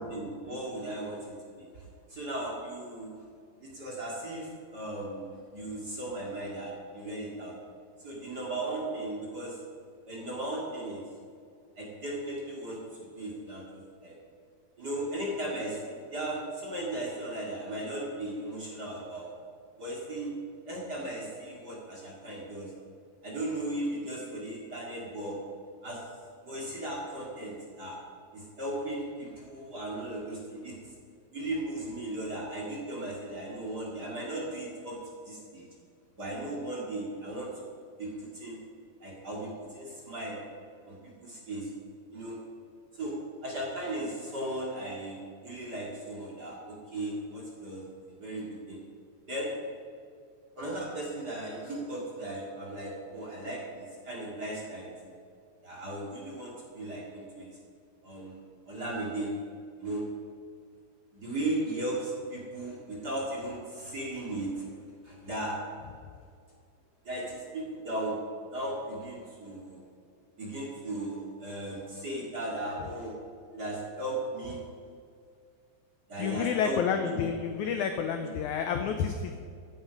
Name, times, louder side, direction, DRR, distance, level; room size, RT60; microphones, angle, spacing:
voice 1, 0.0-3.1 3.6-7.5 8.0-9.6 10.1-11.0 11.8-14.1 14.8-19.3 19.8-20.3 20.7-22.7 23.2-25.4 25.8-26.0 26.4-28.0 28.3-30.8 31.3-35.7 36.2-37.5 38.0-38.6 39.0-40.4 40.9-41.7 42.1-42.4 42.9-47.8 48.2-48.8 49.3-49.5 50.6-54.9 55.6-57.5 58.0-58.4 58.7-59.3 59.8-60.0 61.1-64.6 65.0-65.6 67.0-68.2 68.5-69.8 70.4-73.1 73.5-74.6 76.1-77.3 78.2-78.3, right 1 dB, 35° right, -3 dB, 2.1 m, -36 dB
voice 2, 76.2-79.4, left 7 dB, 80° left, 6 dB, 1.7 m, -29 dB
14.5 x 9.8 x 5.2 m, 2.3 s
omnidirectional pair, 4.3 m